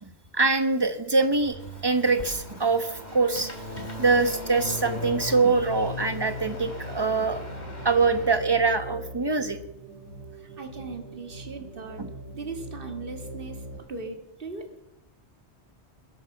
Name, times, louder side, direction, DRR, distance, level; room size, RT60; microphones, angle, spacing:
voice 1, 0.0-3.5 3.8-7.4 7.8-9.6 12.0-12.1, right 3 dB, 20° right, 9 dB, 1.2 m, -24 dB
sound 1, 1.4-8.3, left 1 dB, 40° left, 3.1 m, -38 dB
sound 2, 4.5-13.8, equal, 70° left, 6.4 m, -41 dB
voice 2, 10.3-12.0 12.3-14.8, right 4 dB, 50° right, 5 dB, 2.0 m, -39 dB
21.0 x 9.4 x 7.2 m, 0.88 s
omnidirectional pair, 1.2 m